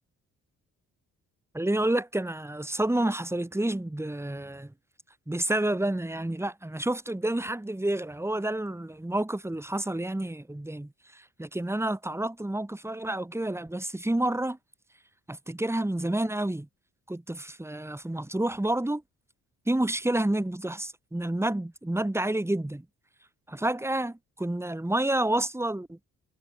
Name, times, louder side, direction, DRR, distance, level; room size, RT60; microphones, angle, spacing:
voice 1, 1.5-4.7 5.3-14.6 15.3-16.7 17.1-19.0 19.7-22.8 23.5-26.0, right 1 dB, 10° right, 6.8 m, -29 dB
cardioid pair, 90°, 30 cm